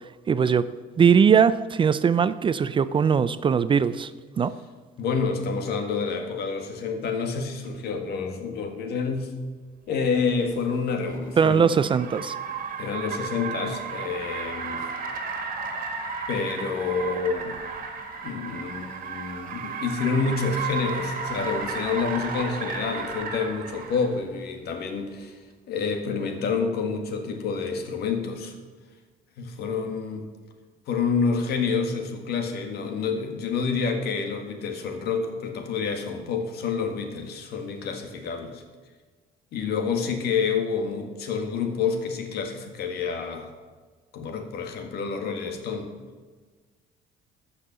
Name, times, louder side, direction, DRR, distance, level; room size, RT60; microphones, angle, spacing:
voice 1, 0.3-0.7 1.0-4.1 4.4-4.5 11.4-12.4, right 7 dB, 30° right, 15 dB, 0.4 m, -20 dB
voice 2, 5.0-9.3 9.9-11.7 12.8-14.9 16.3-17.6 18.2-25.4 25.7-28.6 29.4-30.2 30.9-38.6 39.5-43.5 44.1-45.9, left 5 dB, 70° left, 5 dB, 1.7 m, -28 dB
Car, 10.2-24.1, right 5 dB, 55° right, 1.9 m, -34 dB
14.0 x 5.6 x 6.9 m, 1.4 s
cardioid pair, 110°, 17 cm